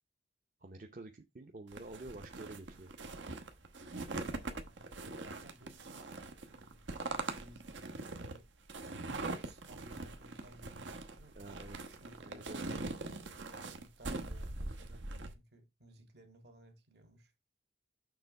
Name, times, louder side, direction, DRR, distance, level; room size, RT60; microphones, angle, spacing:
voice 1, 0.6-2.9 11.3-11.8 12.2-12.6, right 2 dB, 45° right, 0.7 m, -49 dB
sound 1, 1.7-15.3, right 3 dB, 90° right, 1.1 m, -42 dB
voice 2, 4.2-4.9 5.2-6.2 6.5-8.5 9.4-12.8 13.5-17.3, right 1 dB, 65° right, 1.8 m, -59 dB
6.8 x 3.5 x 5.3 m
head